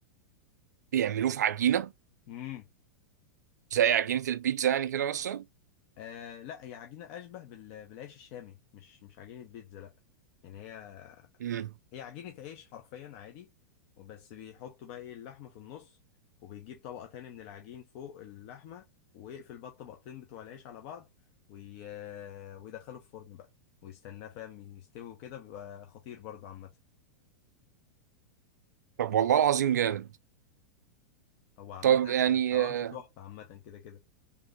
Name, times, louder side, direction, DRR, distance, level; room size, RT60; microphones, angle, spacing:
voice 1, 0.9-1.9 3.7-5.4 11.4-11.7 29.0-30.1 31.8-32.9, right 10 dB, 65° right, 0.4 m, -26 dB
voice 2, 2.3-2.7 6.0-9.9 10.4-11.3 11.9-13.5 14.0-16.0 16.4-18.9 19.1-21.1 21.5-23.5 23.8-26.7 31.6-32.1 32.5-34.0, left 10 dB, 45° left, 0.6 m, -45 dB
3.3 x 2.7 x 3.3 m
figure-of-eight pair, 95°, 10 cm